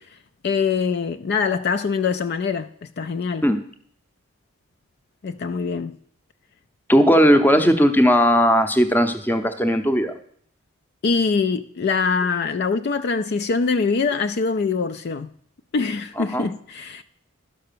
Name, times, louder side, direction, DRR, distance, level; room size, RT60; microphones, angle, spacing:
voice 1, 0.4-2.7 3.0-3.4 5.2-5.9 11.0-15.3 15.7-17.0, left 5 dB, 50° left, 0.4 m, -23 dB
voice 2, 6.9-10.1 16.2-16.5, equal, 10° left, 0.7 m, -17 dB
11.5 x 5.6 x 6.8 m
head